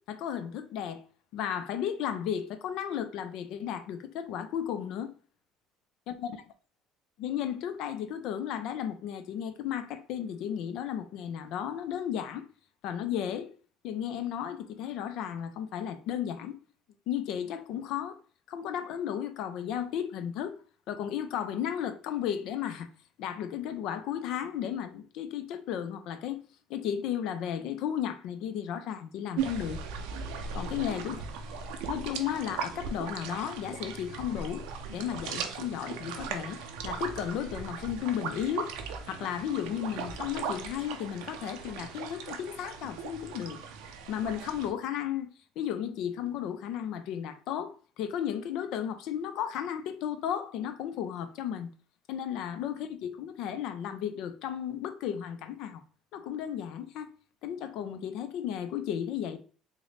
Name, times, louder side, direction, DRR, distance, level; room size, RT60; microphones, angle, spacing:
voice 1, 0.1-1.0 1.3-5.1 6.1-6.4 7.2-12.5 12.8-13.5 13.8-16.6 17.1-18.2 18.5-20.6 20.9-22.9 23.2-26.4 26.7-29.8 30.6-31.1 31.9-34.6 34.9-36.6 36.8-38.7 39.1-43.6 44.1-45.3 45.6-51.7 52.1-55.8 56.1-57.1 57.4-59.4, left 9 dB, 75° left, 0.4 m, -34 dB
sound 1, 29.4-44.7, right 6 dB, 90° right, 0.4 m, -38 dB
3.7 x 2.1 x 3.2 m
cardioid pair, 100°, 0 cm